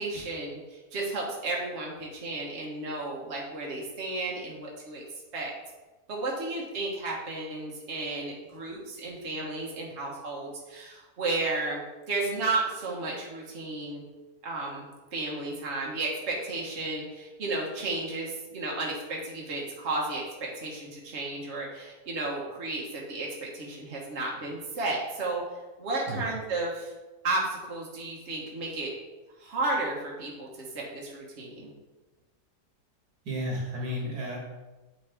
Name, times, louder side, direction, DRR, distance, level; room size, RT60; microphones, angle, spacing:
voice 1, 0.0-5.0 5.3-5.5 6.1-14.0 14.4-25.4 25.8-26.9 27.2-28.9 29.4-30.5 30.7-31.7, right 2 dB, 45° right, -3 dB, 1.5 m, -33 dB
voice 2, 33.3-34.4, equal, 75° right, -2 dB, 2.2 m, -32 dB
8.5 x 5.0 x 3.5 m, 1.2 s
omnidirectional pair, 1.7 m